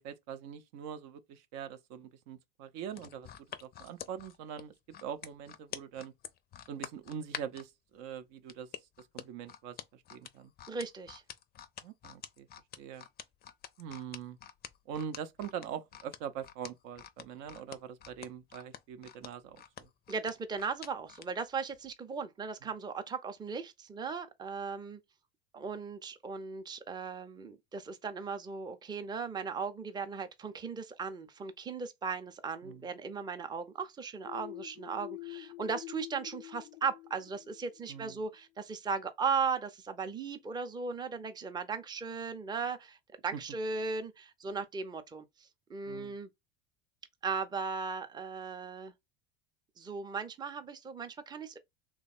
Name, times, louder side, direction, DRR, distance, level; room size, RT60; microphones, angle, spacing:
voice 1, 0.0-3.3 3.6-4.7 5.0-6.1 6.7-8.7 9.0-10.5 11.8-12.5 12.8-13.0 13.8-14.4 14.9-19.9 32.6-32.8 37.9-38.2 43.3-43.4 45.9-46.2, right 8 dB, 55° right, 0.6 m, -43 dB
sound 1, 2.9-7.7 8.5-21.3 21.7-21.9, left 9 dB, 30° left, 0.5 m, -46 dB
voice 2, 10.7-11.2 20.1-25.0 25.5-43.0 43.2-46.3 47.2-48.9 49.8-51.6, right 5 dB, 15° right, 0.6 m, -37 dB
sound 2, 34.2-37.9, left 18 dB, 85° left, 0.5 m, -46 dB
3.2 x 2.3 x 4.2 m
hypercardioid pair, 90°, 30 cm